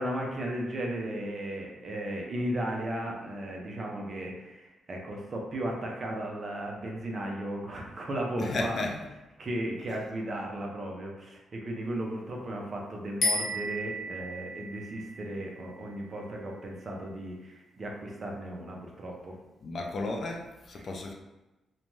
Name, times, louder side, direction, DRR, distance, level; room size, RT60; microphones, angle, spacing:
voice 1, 0.0-8.8 9.4-19.3 20.8-20.9, right 1 dB, 35° right, -1 dB, 0.5 m, -35 dB
voice 2, 8.4-9.0 19.6-21.1, left 2 dB, 40° left, 2 dB, 0.3 m, -33 dB
sound 1, 13.2-16.6, left 1 dB, 65° left, 0.7 m, -34 dB
2.5 x 2.2 x 3.0 m, 1.0 s
wide cardioid pair, 160°, 0 cm